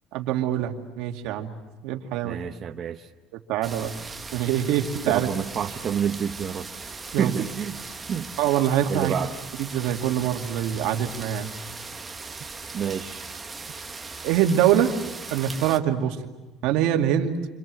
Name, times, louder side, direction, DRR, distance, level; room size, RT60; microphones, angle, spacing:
voice 1, 0.1-1.5 1.8-2.4 3.5-3.9 4.3-5.3 7.1-7.4 8.4-9.2 9.6-11.5 14.2-14.9 15.3-16.2 16.6-17.3, right 11 dB, 70° right, 3 dB, 2.4 m, -24 dB
voice 2, 2.2-3.1 5.0-6.7 7.2-7.8 8.1-8.3 8.9-9.3 12.7-13.2, right 8 dB, 35° right, 4 dB, 0.9 m, -28 dB
sound 1, 3.6-15.8, right 4 dB, 15° right, 1.2 m, -39 dB
29.0 x 26.5 x 7.7 m, 1.1 s
cardioid pair, 165°, 0 cm